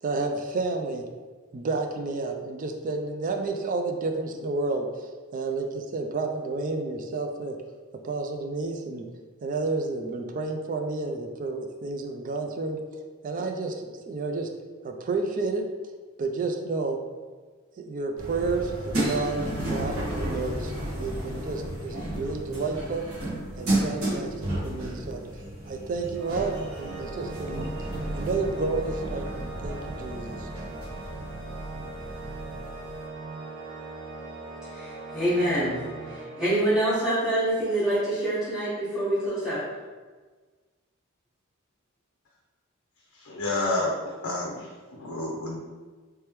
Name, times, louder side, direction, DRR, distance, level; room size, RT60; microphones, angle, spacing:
voice 1, 0.0-1.0 1.5-4.9 5.3-7.6 8.0-9.0 9.4-12.8 13.2-14.5 14.8-15.7 16.2-17.0 17.8-23.0 23.6-25.2 25.7-27.7 28.1-30.5, right 3 dB, 40° right, 4 dB, 0.3 m, -30 dB
sound 1, 18.2-33.0, right 1 dB, 85° right, 1.4 m, -33 dB
Organ, 26.1-37.0, right 3 dB, 55° right, 0.8 m, -40 dB
voice 2, 34.7-35.8 36.1-39.6, right 1 dB, ahead, -14 dB, 1.5 m, -26 dB
voice 3, 43.1-44.0 44.2-45.6, left 2 dB, 70° left, -1 dB, 0.5 m, -29 dB
3.4 x 3.2 x 3.0 m, 1.4 s
head